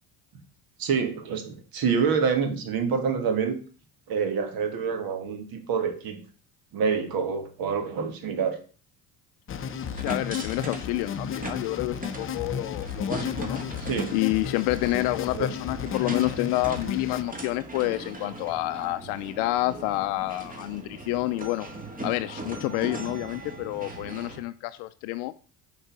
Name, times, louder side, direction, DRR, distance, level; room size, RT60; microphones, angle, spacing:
voice 1, 0.8-3.6 4.1-6.2 6.7-8.6 13.8-14.1 15.3-15.5, right 6 dB, 55° right, 6 dB, 1.8 m, -27 dB
sound 1, 9.5-17.2, left 7 dB, 30° left, 0.6 m, -33 dB
sound 2, 9.5-24.4, right 2 dB, 20° right, 1.8 m, -39 dB
voice 2, 10.0-21.7 22.0-25.3, left 18 dB, 70° left, 11 dB, 0.5 m, -29 dB
6.4 x 4.0 x 6.0 m, 0.39 s
supercardioid pair, 85°, 42 cm